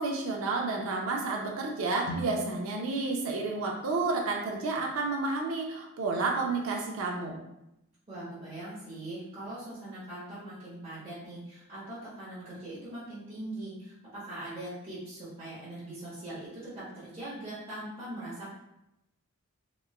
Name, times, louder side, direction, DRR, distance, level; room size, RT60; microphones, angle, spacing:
voice 1, 0.0-7.4, right 3 dB, 65° right, 0 dB, 0.4 m, -31 dB
sound 1, 2.0-6.1, equal, 80° left, 0.5 m, -44 dB
voice 2, 8.1-18.5, right 1 dB, 25° right, -12 dB, 0.8 m, -41 dB
3.0 x 2.2 x 2.3 m, 0.86 s
head